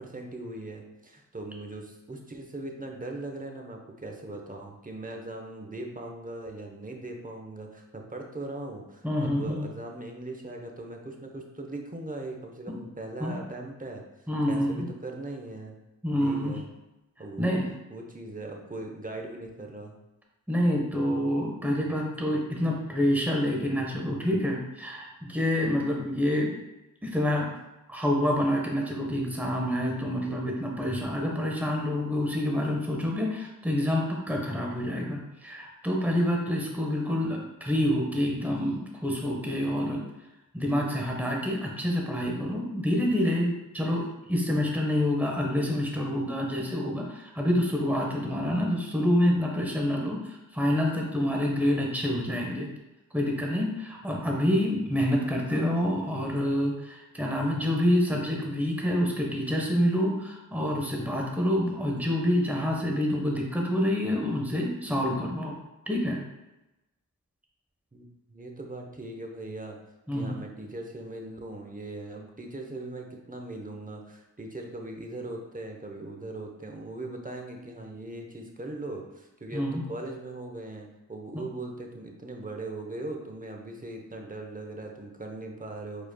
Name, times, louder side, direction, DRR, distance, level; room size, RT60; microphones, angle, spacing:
voice 1, 0.0-14.0 14.5-15.8 16.2-16.7 17.2-17.6 17.9-19.9 67.9-69.8 70.1-86.1, right 2 dB, 25° right, 1 dB, 1.0 m, -39 dB
voice 2, 9.0-9.7 13.2-13.4 14.3-14.9 16.0-16.6 17.4-17.7 20.5-26.6 27.0-27.5 27.9-40.0 40.5-52.7 53.1-65.6 65.9-66.2 70.1-70.4 79.5-79.8 81.3-81.4, left 1 dB, 5° right, -1 dB, 1.1 m, -27 dB
4.8 x 4.5 x 2.3 m, 0.97 s
cardioid pair, 45°, 35 cm